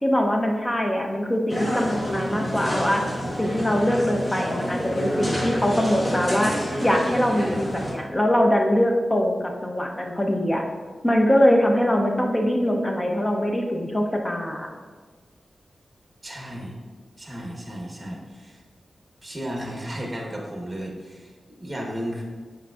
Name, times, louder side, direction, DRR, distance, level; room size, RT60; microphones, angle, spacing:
voice 1, 0.0-3.0 3.4-6.5 6.8-10.6 11.0-14.7, equal, 15° left, 2 dB, 0.6 m, -22 dB
sound 1, 1.5-7.9, equal, 30° left, 1.1 m, -28 dB
voice 2, 16.2-16.8 17.2-18.6 19.2-22.2, equal, 15° right, -1 dB, 1.0 m, -34 dB
8.5 x 5.1 x 2.4 m, 1.5 s
wide cardioid pair, 165°, 0 cm